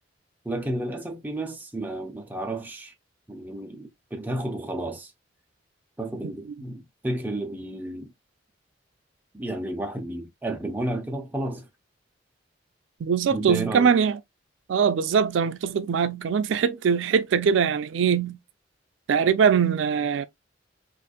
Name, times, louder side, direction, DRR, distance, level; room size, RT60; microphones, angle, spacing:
voice 1, 0.4-2.9 3.3-5.1 6.0-8.1 9.3-11.7 13.3-13.9, right 1 dB, 10° right, 0.5 m, -32 dB
voice 2, 13.0-14.2 14.7-18.4 19.1-20.2, right 6 dB, 75° right, 0.3 m, -22 dB
4.0 x 2.5 x 2.4 m
head